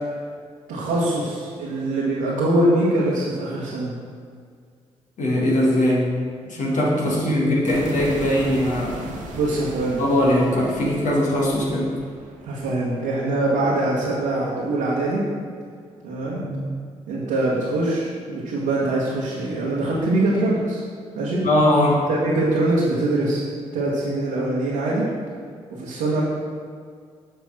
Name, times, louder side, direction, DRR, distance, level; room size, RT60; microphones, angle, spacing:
voice 1, 0.7-4.0 7.0-7.1 9.3-10.0 12.4-15.3 16.0-16.4 17.1-20.8 21.1-21.4 22.1-23.4 23.7-25.1 25.7-26.2, right 2 dB, 85° right, -8 dB, 1.4 m, -23 dB
voice 2, 5.2-6.1 6.5-9.0 10.0-11.9 16.3-16.6 21.4-22.1, left 1 dB, 60° left, -3 dB, 1.6 m, -20 dB
sound 1, 7.7-13.9, right 2 dB, 70° right, 1.3 m, -37 dB
6.8 x 4.6 x 6.0 m, 2.1 s
hypercardioid pair, 45°, 14 cm